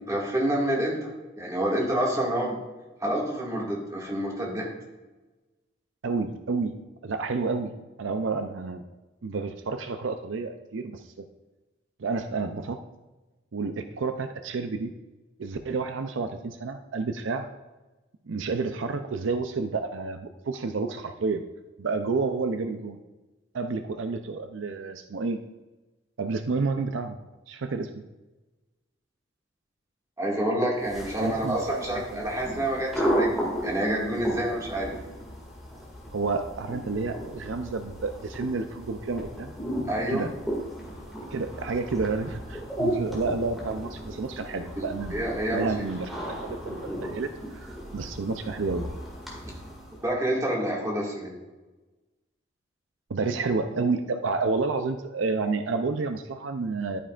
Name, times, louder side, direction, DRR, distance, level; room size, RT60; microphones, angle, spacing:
voice 1, 0.1-1.1 1.4-2.6 3.0-4.7 30.2-34.9 39.9-40.3 44.8-45.7 50.0-51.4, right 1 dB, 15° right, -3 dB, 2.0 m, -28 dB
voice 2, 6.0-8.8 9.2-11.2 12.0-12.8 13.5-14.9 15.4-17.5 18.3-21.4 21.8-23.0 23.5-25.4 26.2-27.2 27.5-28.0 31.2-32.3 36.1-39.5 40.1-40.3 41.3-45.2 45.5-48.9 53.1-57.0, right 4 dB, 80° right, 8 dB, 0.5 m, -30 dB
sound 1, 30.8-50.1, equal, ahead, 2.1 m, -34 dB
11.5 x 9.3 x 2.5 m, 1.1 s
head